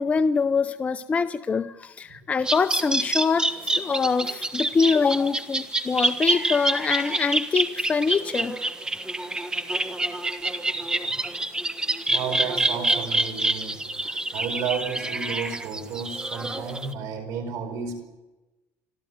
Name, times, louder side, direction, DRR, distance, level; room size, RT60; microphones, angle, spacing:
voice 1, 0.0-8.6, left 5 dB, 25° left, 10 dB, 0.6 m, -24 dB
sound 1, 2.4-16.9, right 2 dB, 15° right, 1.4 m, -27 dB
voice 2, 12.1-18.1, right 6 dB, 65° right, 9 dB, 4.9 m, -32 dB
26.0 x 14.0 x 9.3 m, 1.1 s
cardioid pair, 120°, 6 cm